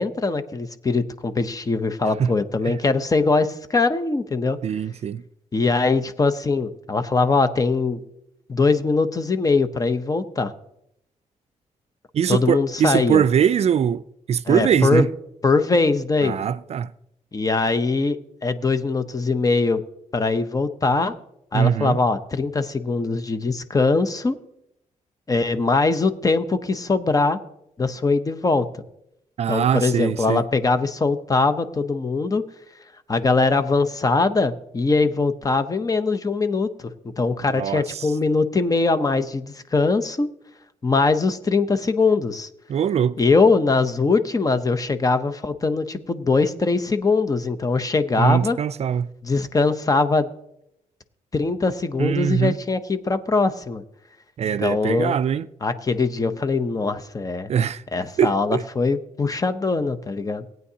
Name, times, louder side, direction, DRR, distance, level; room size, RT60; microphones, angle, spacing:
voice 1, 0.0-4.6 5.5-8.0 8.5-10.5 12.3-13.2 14.5-15.0 15.4-16.4 17.3-18.2 18.4-19.8 20.1-21.1 21.5-24.4 25.3-27.4 27.8-28.7 29.5-32.4 33.1-36.7 37.2-40.3 40.8-42.5 43.2-48.6 49.2-50.3 51.3-53.8 54.6-55.2 55.6-57.5 57.9-60.4, left 3 dB, 25° left, 0.7 m, -21 dB
voice 2, 4.6-5.2 12.1-14.0 14.3-15.1 16.2-16.9 21.5-22.0 29.4-30.4 37.5-38.1 42.7-43.2 48.2-49.1 52.0-52.6 54.4-55.5 57.5-57.8 58.2-58.6, right 8 dB, 50° right, 0.4 m, -21 dB
18.0 x 9.0 x 2.8 m
cardioid pair, 115°, 13 cm